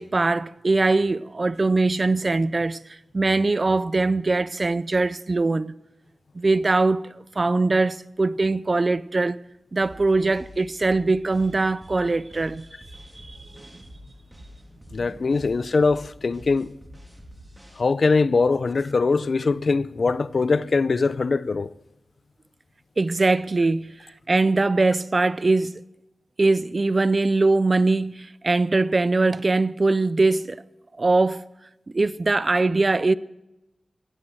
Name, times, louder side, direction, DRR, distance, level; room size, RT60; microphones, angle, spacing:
voice 1, 0.0-5.7 6.3-9.4 9.7-12.7 12.9-13.8 15.0-15.1 23.0-23.9 24.3-25.8 26.4-30.6 31.0-31.4 31.9-33.1, right 3 dB, 35° right, 0.5 m, -22 dB
sound 1, 9.8-17.8, equal, 10° right, 3.5 m, -46 dB
voice 2, 14.9-16.7 17.8-21.7, left 4 dB, 55° left, 0.5 m, -22 dB
16.5 x 16.0 x 4.6 m
wide cardioid pair, 95°, 0 cm